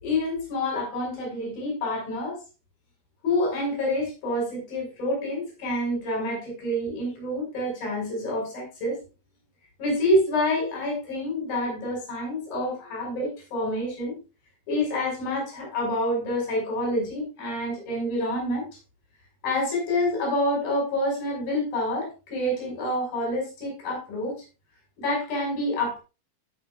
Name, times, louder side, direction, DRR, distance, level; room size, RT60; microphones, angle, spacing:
voice 1, 0.0-2.4 3.2-9.0 9.8-14.1 14.7-18.6 19.4-24.4 25.0-26.0, left 1 dB, 65° left, -2 dB, 8.0 m, -27 dB
16.5 x 8.6 x 2.5 m, 0.30 s
omnidirectional pair, 4.5 m